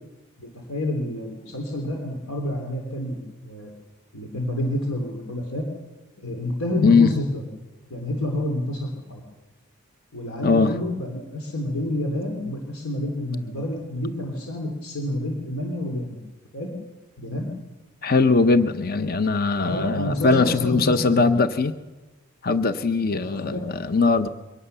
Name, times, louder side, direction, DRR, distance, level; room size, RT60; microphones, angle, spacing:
voice 1, 0.4-3.7 4.1-5.6 6.2-7.4 7.9-9.2 10.1-16.2 16.5-16.7 17.2-17.5 19.6-21.4 23.1-23.7, left 1 dB, 85° left, 1 dB, 3.5 m, -29 dB
voice 2, 10.4-10.7 18.0-21.7 22.4-24.3, left 4 dB, 45° left, 10 dB, 0.9 m, -20 dB
23.5 x 19.0 x 6.9 m, 1.1 s
head